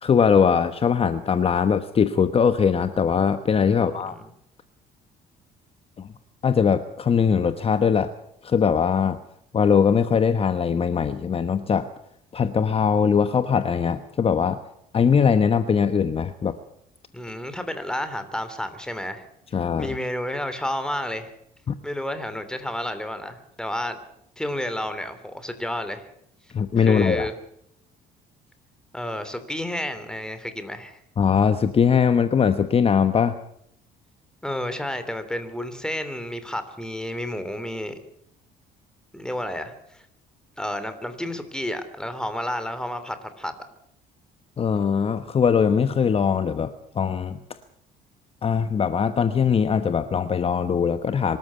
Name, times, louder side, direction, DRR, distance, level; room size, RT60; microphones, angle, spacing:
voice 1, 0.0-4.1 6.0-6.1 6.4-8.1 8.4-9.2 9.5-11.9 12.3-14.6 14.9-16.6 19.5-19.9 21.7-21.8 26.5-27.3 31.2-33.4 44.6-47.4 48.4-51.4, left 6 dB, 35° left, 11 dB, 1.1 m, -21 dB
voice 2, 3.7-4.3 17.1-19.3 19.8-21.3 21.8-24.0 24.4-26.1 26.8-27.3 28.9-31.0 34.4-38.0 39.1-40.0 40.6-43.5, left 1 dB, 5° left, 10 dB, 3.1 m, -31 dB
24.5 x 13.5 x 8.4 m, 0.74 s
cardioid pair, 110°, 17 cm